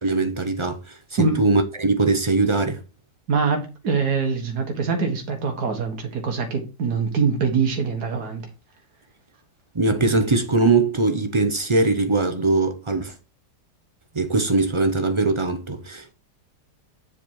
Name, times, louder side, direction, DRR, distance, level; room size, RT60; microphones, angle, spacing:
voice 1, 0.0-2.8 9.7-13.1 14.1-16.1, right 3 dB, 35° right, 0.5 m, -21 dB
voice 2, 3.3-8.5, right 5 dB, 70° right, 2.0 m, -24 dB
7.4 x 4.8 x 4.7 m
omnidirectional pair, 1.8 m